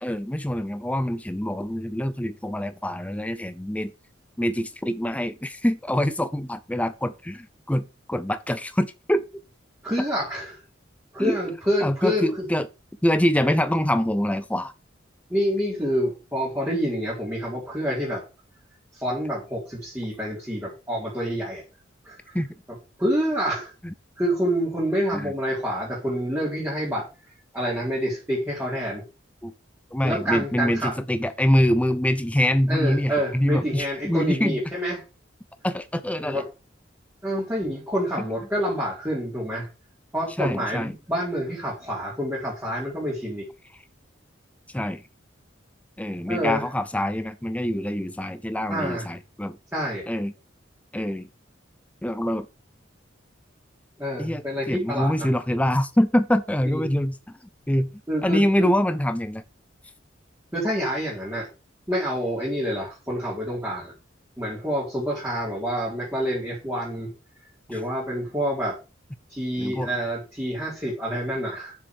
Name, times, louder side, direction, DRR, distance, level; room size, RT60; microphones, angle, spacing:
voice 1, 0.0-3.9 4.4-9.2 11.2-11.4 11.8-12.7 13.0-14.7 22.3-22.5 23.8-23.9 25.1-25.3 29.4-29.5 29.9-34.6 35.6-36.4 38.2-38.3 40.4-40.9 44.7-45.0 46.0-49.6 50.1-50.3 50.9-51.3 52.0-52.5 54.2-57.4 57.7-59.4 67.7-67.8 69.6-69.9, equal, 5° left, 0.5 m, -25 dB
voice 2, 9.8-10.6 11.1-12.5 15.3-18.2 18.9-21.6 22.0-22.4 23.0-23.7 24.2-27.1 27.5-29.0 30.0-31.0 32.7-35.0 36.2-36.4 37.2-39.7 40.1-43.5 46.3-46.6 48.7-49.1 49.7-50.1 54.0-55.3 56.7-56.8 58.1-58.7 60.5-61.5 61.9-63.9 64.4-67.1 67.7-68.8 69.3-71.8, equal, 10° right, 4.2 m, -27 dB
7.5 x 7.1 x 6.3 m
head